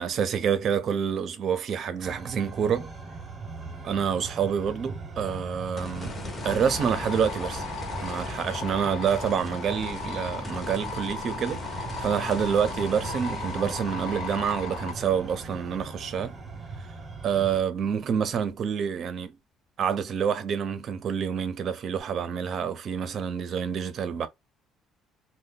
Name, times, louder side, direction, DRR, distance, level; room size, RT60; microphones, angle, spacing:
voice 1, 0.0-2.9 3.8-6.1 6.4-7.6 8.0-16.3 17.2-19.3 19.8-24.3, right 7 dB, 45° right, 0.5 m, -27 dB
sound 1, 2.0-17.6, right 3 dB, 20° right, 0.9 m, -40 dB
sound 2, 5.8-18.1 18.6-18.7 22.0-22.1, left 2 dB, 25° left, 0.8 m, -40 dB
sound 3, 6.4-14.9, left 4 dB, 85° left, 1.0 m, -37 dB
2.6 x 2.1 x 3.7 m
cardioid pair, 140°, 0 cm